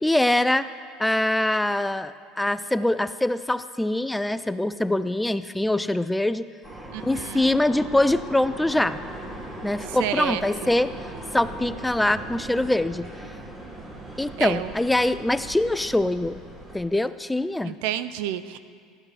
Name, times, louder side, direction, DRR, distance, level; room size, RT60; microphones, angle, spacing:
voice 1, 0.0-0.7 1.0-6.5 7.0-9.0 9.6-10.9 11.3-13.1 14.2-16.4 16.7-17.8, left 1 dB, 5° left, 14 dB, 0.4 m, -23 dB
sound 1, 6.6-16.8, right 1 dB, 20° right, 2.7 m, -39 dB
voice 2, 6.9-7.5 10.0-10.4 14.4-14.7 17.6-18.6, right 12 dB, 75° right, 13 dB, 0.5 m, -29 dB
15.5 x 12.0 x 3.3 m, 2.1 s
hypercardioid pair, 85°, 0 cm